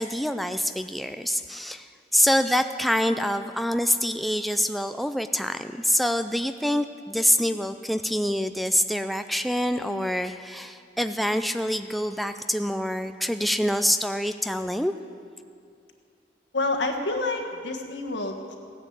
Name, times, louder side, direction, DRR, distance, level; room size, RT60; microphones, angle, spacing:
voice 1, 0.0-14.9, equal, ahead, 8 dB, 0.3 m, -26 dB
voice 2, 16.5-18.6, left 2 dB, 85° left, 4 dB, 1.6 m, -28 dB
16.0 x 10.0 x 8.1 m, 2.3 s
head